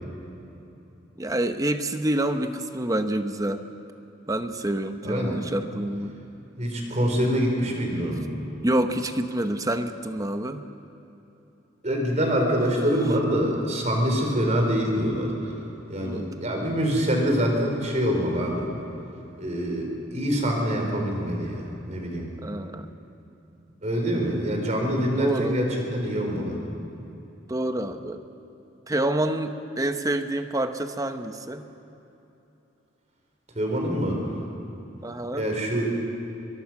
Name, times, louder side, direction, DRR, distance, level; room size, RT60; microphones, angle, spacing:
voice 1, 1.2-3.6 4.3-6.2 8.6-10.6 16.0-16.4 22.4-22.9 25.2-25.6 27.5-28.2 28.9-31.6 35.0-35.4, right 1 dB, 20° right, 8 dB, 0.8 m, -27 dB
voice 2, 5.0-5.4 6.6-8.3 11.8-15.3 15.9-18.7 19.4-22.3 23.8-26.6 33.6-34.2 35.4-35.9, equal, 35° right, 2 dB, 4.0 m, -25 dB
23.5 x 22.5 x 6.0 m, 2.9 s
head